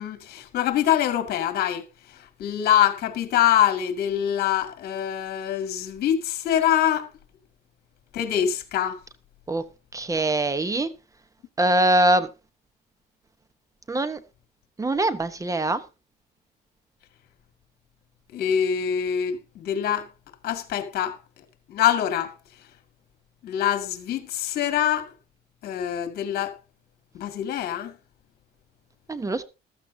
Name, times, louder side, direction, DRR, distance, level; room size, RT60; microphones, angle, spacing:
voice 1, 0.0-7.1 8.1-9.0 18.3-20.1 20.4-21.2 21.7-22.3 23.4-25.1 25.6-26.6 27.1-28.0, left 10 dB, 65° left, 2.2 m, -24 dB
voice 2, 9.9-10.9 11.6-12.3 13.9-14.2 14.8-15.8 29.1-29.4, right 1 dB, 20° right, 1.0 m, -22 dB
14.5 x 13.0 x 2.8 m
cardioid pair, 110°, 17 cm